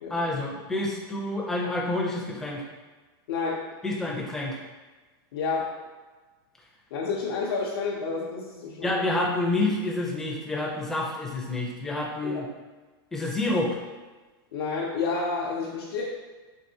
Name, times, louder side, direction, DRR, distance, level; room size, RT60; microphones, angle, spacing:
voice 1, 0.1-2.7 3.8-4.6 8.8-12.5 13.1-13.8, left 2 dB, 5° left, -3 dB, 0.4 m, -28 dB
voice 2, 3.3-3.6 5.3-5.7 6.9-8.9 12.2-12.4 14.5-16.0, left 4 dB, 80° left, -4 dB, 0.6 m, -29 dB
4.5 x 2.8 x 2.7 m, 1.3 s
supercardioid pair, 165°, 12 cm